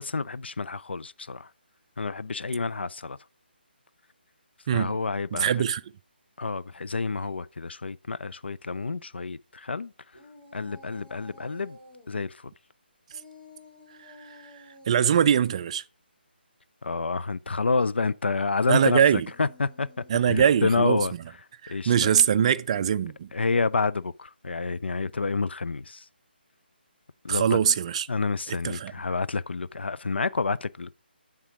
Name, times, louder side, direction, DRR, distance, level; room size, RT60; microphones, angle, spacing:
voice 1, 0.0-1.5 2.0-3.2 4.7-5.7 6.4-9.9 10.5-11.8 12.1-12.5 16.8-19.9 20.2-21.1 21.7-22.1 23.3-26.0 27.2-27.6 28.1-30.9, left 4 dB, 80° left, 0.4 m, -29 dB
voice 2, 4.7-5.0 5.3-5.8 14.1-14.3 14.9-15.8 18.7-19.3 20.1-21.1 21.6-23.3 27.3-28.1 28.5-28.9, right 8 dB, 35° right, 0.4 m, -22 dB
sound 1, 10.1-12.1 13.1-15.0 18.9-21.1, left 2 dB, 55° left, 2.9 m, -52 dB
10.0 x 3.7 x 4.9 m
figure-of-eight pair, 150°, 6 cm